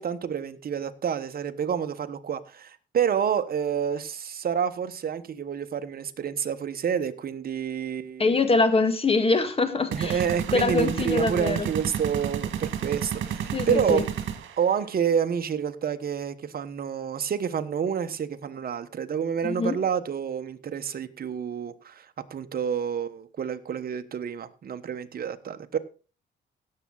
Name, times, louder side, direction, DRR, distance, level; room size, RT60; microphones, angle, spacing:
voice 1, 0.0-8.4 9.9-14.0 14.6-25.8, right 7 dB, 50° right, 9 dB, 1.2 m, -29 dB
voice 2, 8.2-10.2 10.5-11.7 13.5-14.0 19.4-19.8, left 3 dB, 30° left, 9 dB, 2.0 m, -23 dB
sound 1, 9.9-14.8, right 9 dB, 75° right, 1.8 m, -31 dB
16.5 x 7.5 x 4.0 m, 0.35 s
cardioid pair, 90°, 20 cm